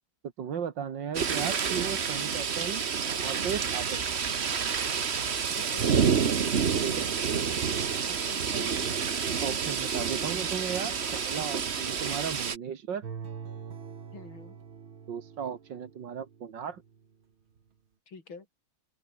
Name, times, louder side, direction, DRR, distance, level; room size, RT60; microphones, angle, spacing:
voice 1, 0.4-4.0 6.8-7.1 9.4-13.0 15.1-16.8, right 7 dB, 65° right, 2.3 m, -36 dB
sound 1, 1.1-12.6, right 6 dB, 40° right, 1.2 m, -29 dB
voice 2, 5.5-6.5 7.0-8.9 14.1-14.6 18.1-18.5, left 4 dB, 85° left, 4.7 m, -48 dB
sound 2, 13.0-17.1 17.6-17.7, right 6 dB, 90° right, 3.1 m, -44 dB
open air
omnidirectional pair, 2.2 m